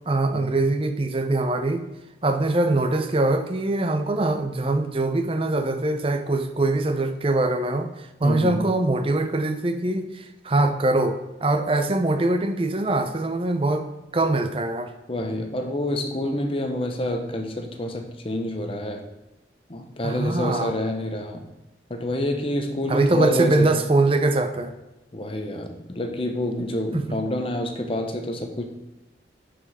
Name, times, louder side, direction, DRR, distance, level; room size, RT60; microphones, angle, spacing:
voice 1, 0.1-1.9 2.2-13.9 14.1-14.9 20.0-20.7 22.9-24.7 26.9-27.2, right 2 dB, 30° right, 8 dB, 0.6 m, -23 dB
voice 2, 8.2-8.7 15.1-19.0 19.7-21.4 21.9-23.7 25.1-28.7, left 1 dB, 30° left, 4 dB, 0.9 m, -28 dB
10.5 x 5.1 x 4.2 m, 1.0 s
head